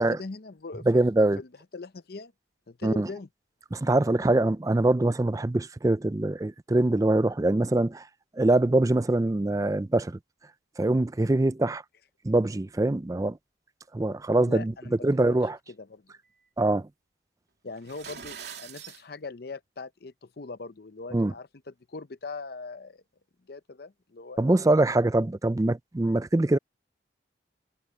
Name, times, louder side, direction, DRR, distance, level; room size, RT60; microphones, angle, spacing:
voice 1, 0.0-1.0 1.4-2.3 2.7-3.3 14.5-15.0 15.2-15.4 15.7-16.1 17.6-23.0 23.5-24.5, left 3 dB, 55° left, 0.7 m, -41 dB
voice 2, 0.9-1.4 2.8-3.1 3.7-8.0 8.4-10.2 10.8-11.8 12.2-13.4 13.9-14.7 15.0-15.6 16.6-16.9 21.1-21.3 24.4-26.6, right 2 dB, 15° right, 0.4 m, -23 dB
sound 1, 17.8-19.0, right 8 dB, 60° right, 3.2 m, -42 dB
head